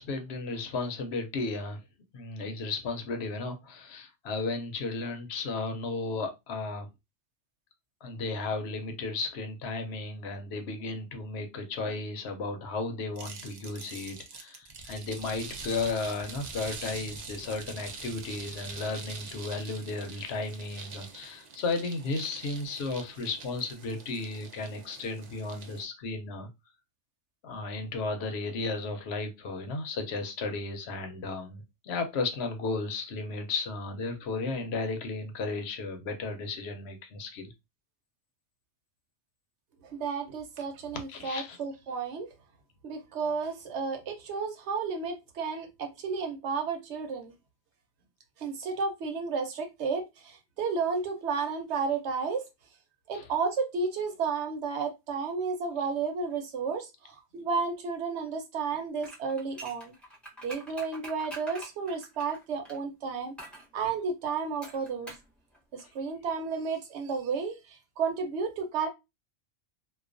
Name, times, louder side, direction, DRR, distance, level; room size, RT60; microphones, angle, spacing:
voice 1, 0.0-1.8 2.1-6.9 8.0-26.5 27.4-37.5 41.1-41.6 53.1-53.3, left 3 dB, 70° left, 0.8 m, -34 dB
sound 1, 13.2-25.8, right 4 dB, 55° right, 0.5 m, -44 dB
voice 2, 39.9-42.3 42.8-47.3 48.4-52.4 53.1-59.9 60.4-63.3 63.7-65.2 65.7-68.9, right 5 dB, 70° right, 1.0 m, -32 dB
sound 2, 59.0-62.8 63.4-63.7 64.6-65.3 65.5-65.6, right 1 dB, ahead, 0.6 m, -45 dB
2.3 x 2.3 x 2.4 m
omnidirectional pair, 1.2 m